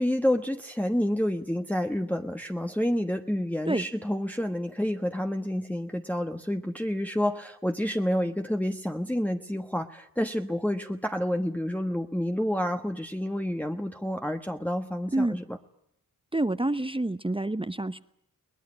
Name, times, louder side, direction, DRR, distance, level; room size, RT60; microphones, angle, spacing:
voice 1, 0.0-15.6, equal, 5° left, 4 dB, 1.2 m, -29 dB
voice 2, 16.3-18.0, right 2 dB, 15° right, 11 dB, 0.9 m, -27 dB
22.5 x 19.5 x 9.7 m, 0.73 s
cardioid pair, 55°, 35 cm